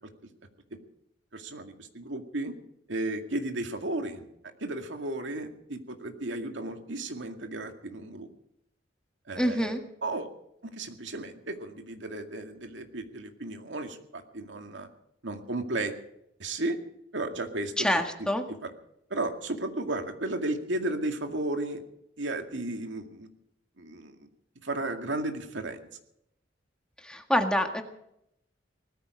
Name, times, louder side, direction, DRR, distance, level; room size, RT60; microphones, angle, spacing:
voice 1, 1.3-2.5 2.9-4.3 4.6-8.3 9.3-9.8 10.0-10.3 10.6-14.9 15.2-15.9 16.4-16.8 17.1-18.3 18.6-18.7 19.1-21.8 22.2-23.3 23.8-24.2 24.6-25.8, right 2 dB, 85° right, 5 dB, 2.2 m, -34 dB
voice 2, 9.3-9.8 17.8-18.4 27.0-27.8, equal, 5° left, 5 dB, 1.8 m, -26 dB
20.0 x 14.0 x 5.1 m, 0.78 s
head